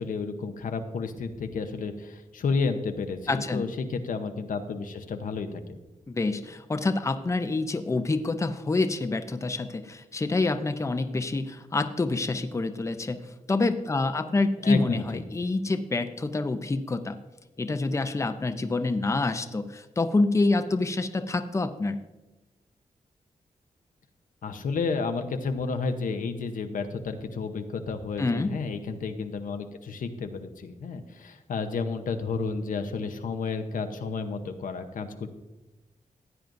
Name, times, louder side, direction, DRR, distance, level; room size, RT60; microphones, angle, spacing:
voice 1, 0.0-5.8 14.6-15.0 24.4-35.3, left 4 dB, 85° left, 7 dB, 0.9 m, -31 dB
voice 2, 3.3-3.7 6.1-17.2 17.6-22.0 28.2-28.5, left 3 dB, 20° left, 8 dB, 0.6 m, -27 dB
15.5 x 9.0 x 2.6 m, 1.1 s
wide cardioid pair, 105°, 13 cm